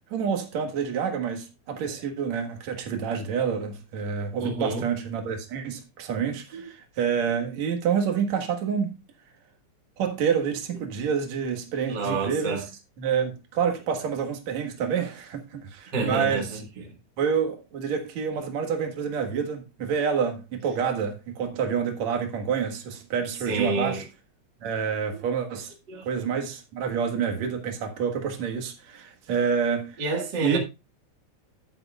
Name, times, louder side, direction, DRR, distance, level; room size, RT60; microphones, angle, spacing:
voice 1, 0.1-8.9 10.0-12.7 13.0-16.6 17.2-24.1 24.6-25.7 26.1-30.0 30.4-30.6, right 7 dB, 70° right, 2.9 m, -28 dB
voice 2, 4.4-4.8 6.5-6.7 11.9-12.6 14.9-15.0 15.9-16.4 23.5-24.0 25.9-26.0 30.0-30.6, right 3 dB, 40° right, 2.2 m, -28 dB
10.5 x 10.0 x 2.4 m
omnidirectional pair, 3.3 m